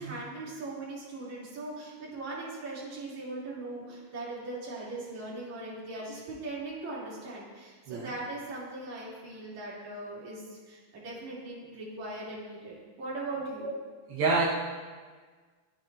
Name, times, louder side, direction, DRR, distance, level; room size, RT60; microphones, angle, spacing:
voice 1, 0.0-13.7, right 2 dB, 50° right, -6 dB, 4.7 m, -39 dB
voice 2, 14.1-14.5, right 4 dB, 80° right, -6 dB, 3.4 m, -27 dB
26.5 x 9.5 x 2.8 m, 1.5 s
omnidirectional pair, 4.2 m